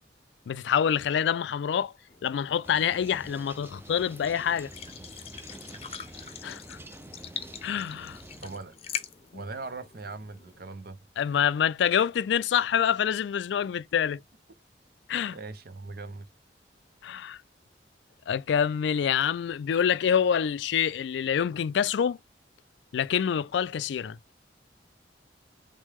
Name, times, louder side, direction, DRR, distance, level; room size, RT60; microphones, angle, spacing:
voice 1, 0.5-1.9 2.2-4.7 6.4-6.8 7.6-8.2 9.3-9.4 11.2-14.2 15.1-15.4 17.0-17.4 18.3-22.2 22.9-24.2, left 8 dB, 75° left, 0.3 m, -26 dB
sound 1, 2.1-10.6, left 8 dB, 35° left, 0.6 m, -43 dB
sound 2, 2.6-8.6, right 1 dB, 10° right, 0.4 m, -47 dB
voice 2, 8.4-8.8 9.3-11.0 15.3-16.3, right 3 dB, 55° right, 0.7 m, -40 dB
6.3 x 2.2 x 3.4 m
head